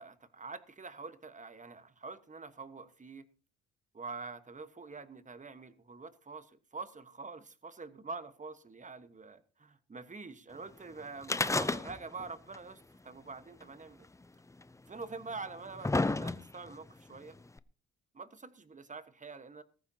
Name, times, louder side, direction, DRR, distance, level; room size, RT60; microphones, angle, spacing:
voice 1, 0.0-3.2 3.9-14.1 14.9-17.4 18.1-19.6, right 4 dB, 25° right, 11 dB, 1.3 m, -46 dB
sound 1, 11.2-12.3 12.5-12.6 13.6-13.7 14.6-14.7 15.4-16.7 17.6-17.7, left 2 dB, 10° left, 0.6 m, -31 dB
18.5 x 14.5 x 2.9 m, 0.37 s
cardioid pair, 90°, 30 cm